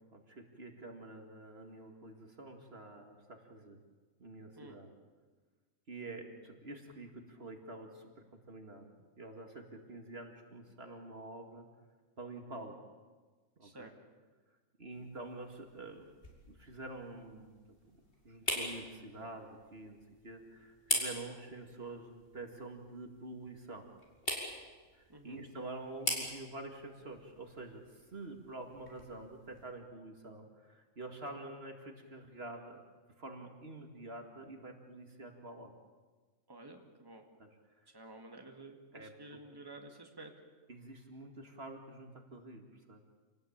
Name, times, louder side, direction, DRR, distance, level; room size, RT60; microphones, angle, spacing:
voice 1, 0.1-3.8 4.2-4.9 5.9-11.7 12.2-12.8 13.6-13.9 14.8-16.1 16.5-17.6 17.9-23.9 24.9-32.8 33.2-35.7 37.4-37.5 37.8-37.9 38.9-39.1 40.7-43.0, right 2 dB, 50° right, 4 dB, 2.4 m, -47 dB
voice 2, 13.6-13.9 25.1-25.4 36.5-37.2 37.9-40.3, right 2 dB, 15° right, 2 dB, 2.3 m, -51 dB
sound 1, 14.9-29.7, left 1 dB, 45° left, 5.4 m, -43 dB
28.0 x 19.0 x 8.7 m, 1.4 s
omnidirectional pair, 1.3 m